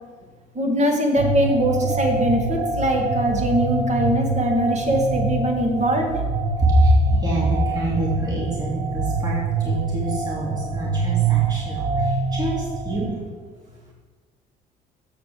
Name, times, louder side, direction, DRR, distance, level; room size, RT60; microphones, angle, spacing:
voice 1, 0.5-6.2, equal, 40° right, 1 dB, 2.2 m, -22 dB
sound 1, 1.2-13.1, right 4 dB, 80° right, 1.1 m, -25 dB
voice 2, 6.6-13.3 13.7-13.9, equal, 25° right, -5 dB, 2.8 m, -24 dB
7.7 x 6.8 x 6.8 m, 1.4 s
cardioid pair, 110°, 17 cm